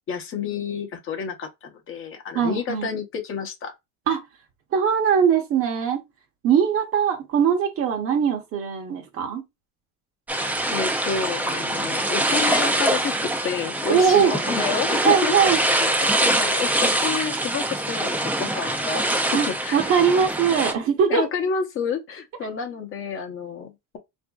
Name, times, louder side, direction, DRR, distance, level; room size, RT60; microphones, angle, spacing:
voice 1, 0.1-3.7 10.4-19.0 19.3-19.9 21.1-24.0, left 6 dB, 40° left, 0.8 m, -30 dB
voice 2, 2.3-2.9 4.1-4.2 4.7-6.0 6.4-9.4 13.9-14.4 15.0-15.6 19.3-21.3, right 7 dB, 45° right, 0.8 m, -21 dB
sound 1, 10.3-20.7, right 1 dB, 5° right, 0.4 m, -24 dB
3.5 x 2.6 x 2.3 m
cardioid pair, 140°, 32 cm